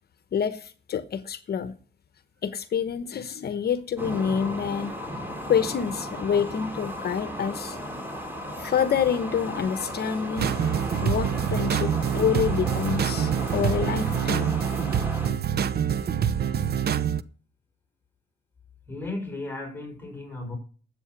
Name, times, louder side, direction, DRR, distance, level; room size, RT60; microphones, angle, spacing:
voice 1, 0.3-1.7 2.4-5.0 5.4-7.8 8.5-10.5 11.0-14.6, left 7 dB, 55° left, 1.0 m, -27 dB
sound 1, 4.0-15.3, equal, 10° right, 3.9 m, -35 dB
sound 2, 10.4-17.2, right 8 dB, 55° right, 0.8 m, -26 dB
voice 2, 18.9-20.6, left 2 dB, 10° left, 5.8 m, -35 dB
12.5 x 8.5 x 6.0 m
cardioid pair, 90°, 20 cm